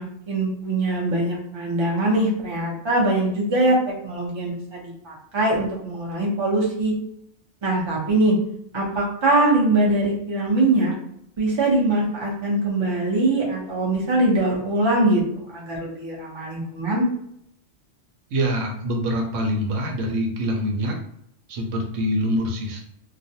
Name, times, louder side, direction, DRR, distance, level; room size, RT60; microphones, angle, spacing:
voice 1, 0.0-3.8 4.0-6.9 7.6-8.4 8.7-10.9 11.4-17.0, right 2 dB, 30° right, -4 dB, 0.6 m, -22 dB
voice 2, 18.3-21.0 21.5-22.8, equal, 85° right, 1 dB, 1.0 m, -25 dB
2.4 x 2.1 x 2.7 m, 0.73 s
omnidirectional pair, 1.3 m